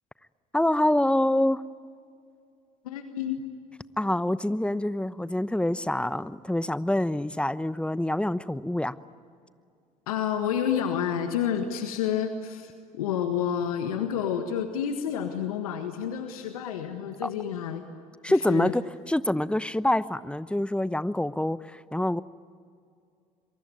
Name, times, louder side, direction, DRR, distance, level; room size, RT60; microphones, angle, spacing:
voice 1, 0.5-1.6 4.0-8.9 17.2-17.3 18.2-22.2, left 1 dB, 5° left, 16 dB, 0.9 m, -26 dB
voice 2, 2.8-3.4 10.1-17.8 18.2-18.7, left 8 dB, 85° left, 6 dB, 1.6 m, -29 dB
26.5 x 23.5 x 9.3 m, 2.3 s
hypercardioid pair, 60°, 18 cm